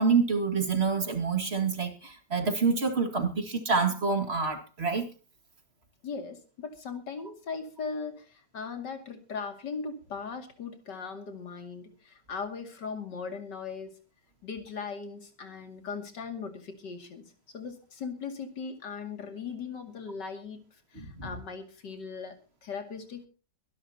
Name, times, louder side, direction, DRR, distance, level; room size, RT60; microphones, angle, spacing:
voice 1, 0.0-5.1 20.9-21.3, right 4 dB, 35° right, 2.3 m, -27 dB
voice 2, 6.0-13.9 14.4-20.6 20.9-23.3, left 5 dB, 90° left, 2.9 m, -39 dB
24.0 x 11.5 x 2.8 m
omnidirectional pair, 1.8 m